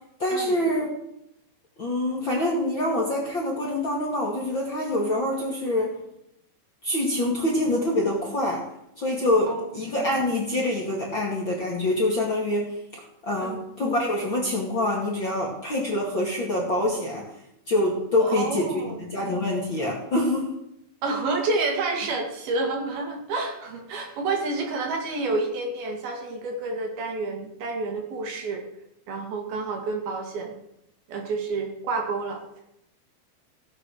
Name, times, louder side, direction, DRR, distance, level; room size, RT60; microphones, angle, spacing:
voice 1, 0.2-0.9 1.8-6.0 6.8-8.6 9.0-17.3 17.7-20.5, left 1 dB, 35° left, -2 dB, 2.2 m, -25 dB
voice 2, 18.2-19.1 21.0-28.6 29.1-30.6 31.1-32.4, right 3 dB, 60° right, 2 dB, 3.7 m, -29 dB
16.5 x 8.8 x 6.4 m, 0.80 s
omnidirectional pair, 5.1 m